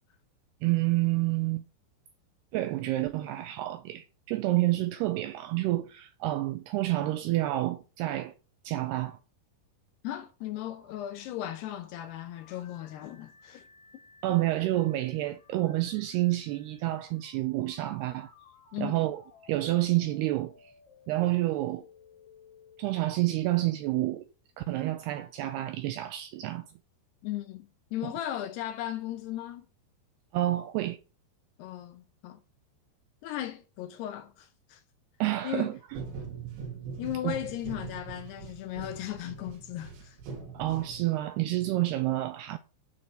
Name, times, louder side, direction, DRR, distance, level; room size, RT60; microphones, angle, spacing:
voice 1, 0.6-1.7 2.5-8.3 8.6-9.2 14.2-18.3 18.8-19.2 19.5-20.5 21.1-21.8 22.8-24.3 24.6-26.7 30.3-31.0 35.2-36.0 37.2-37.4 40.5-42.6, right 16 dB, 85° right, 2.3 m, -29 dB
voice 2, 10.0-13.6 18.7-19.1 27.2-29.7 31.6-32.4 33.2-34.8 35.4-35.7 37.0-40.2, left 12 dB, 80° left, 2.5 m, -37 dB
sound 1, 10.6-24.4, left 5 dB, 60° left, 3.7 m, -59 dB
sound 2, 35.9-41.4, right 5 dB, 70° right, 4.7 m, -42 dB
9.5 x 4.2 x 7.5 m
omnidirectional pair, 5.3 m